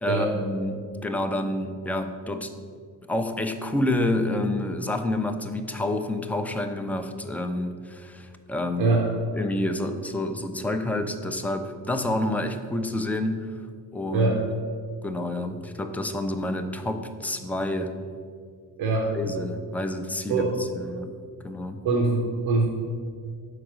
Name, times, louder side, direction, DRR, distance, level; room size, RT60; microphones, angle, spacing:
voice 1, 0.0-2.5 3.1-9.0 9.3-13.6 13.9-14.4 15.0-17.9 19.1-21.1 21.4-22.0, left 1 dB, 5° left, 6 dB, 0.5 m, -28 dB
voice 2, 18.8-19.1 20.3-20.5 21.8-22.7, right 3 dB, 90° right, 0 dB, 0.9 m, -23 dB
4.9 x 4.6 x 6.1 m, 2.1 s
cardioid pair, 85°, 36 cm